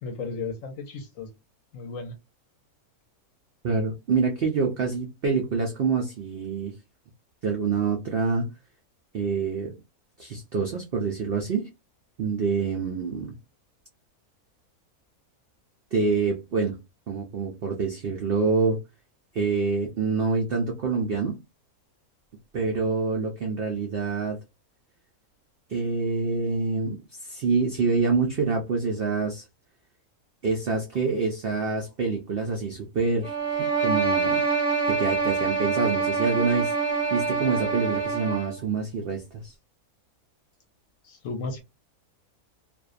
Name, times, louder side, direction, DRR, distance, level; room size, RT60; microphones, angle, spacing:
voice 1, 0.0-1.3 1.7-2.1 41.0-41.6, left 4 dB, 70° left, 0.9 m, -34 dB
voice 2, 3.6-6.7 7.4-8.5 9.1-9.7 10.2-11.7 12.2-13.3 15.9-16.7 17.1-18.8 19.3-21.4 22.5-24.4 25.7-29.4 30.4-34.4 34.8-39.5, right 4 dB, 90° right, 0.5 m, -26 dB
sound 1, 33.2-38.6, right 5 dB, 10° left, 0.6 m, -25 dB
2.5 x 2.1 x 2.4 m
omnidirectional pair, 1.6 m